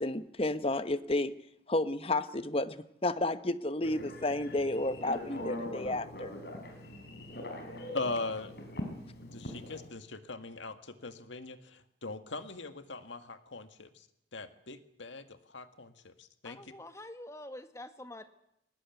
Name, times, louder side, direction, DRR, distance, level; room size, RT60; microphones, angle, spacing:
voice 1, 0.0-1.3 1.7-6.3, left 2 dB, 30° left, 12 dB, 1.1 m, -31 dB
Telephone, 3.8-9.9, left 1 dB, 60° left, 5.5 m, -42 dB
voice 2, 7.9-8.5 9.3-14.1 14.3-16.6, left 3 dB, 85° left, 9 dB, 2.0 m, -40 dB
voice 3, 16.4-18.2, left 1 dB, 15° left, 9 dB, 1.5 m, -46 dB
22.0 x 19.5 x 9.4 m, 0.78 s
head